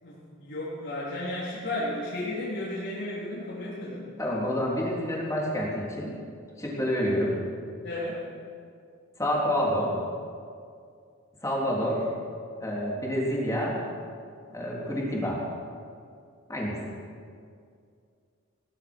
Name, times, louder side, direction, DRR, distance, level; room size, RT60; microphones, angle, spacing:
voice 1, 0.0-4.1 7.8-8.3, left 1 dB, 60° left, -9 dB, 3.9 m, -33 dB
voice 2, 4.2-6.1 6.6-7.4 9.2-10.0 11.4-12.0 12.6-13.8 14.5-15.4 16.5-16.8, equal, 15° left, -4 dB, 3.6 m, -28 dB
18.0 x 12.5 x 6.4 m, 2.3 s
head